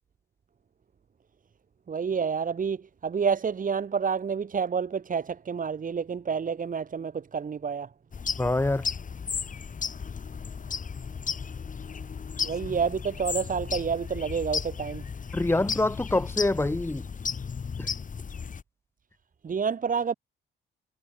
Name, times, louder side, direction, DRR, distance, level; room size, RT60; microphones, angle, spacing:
voice 1, 1.9-7.9 12.4-15.0 19.4-20.1, right 6 dB, 40° right, 4.9 m, -29 dB
sound 1, 8.1-18.6, left 6 dB, 40° left, 6.2 m, -34 dB
voice 2, 8.4-8.9 15.3-17.1 17.8-17.9, left 2 dB, 10° left, 2.5 m, -25 dB
cardioid pair, 90°, 20 cm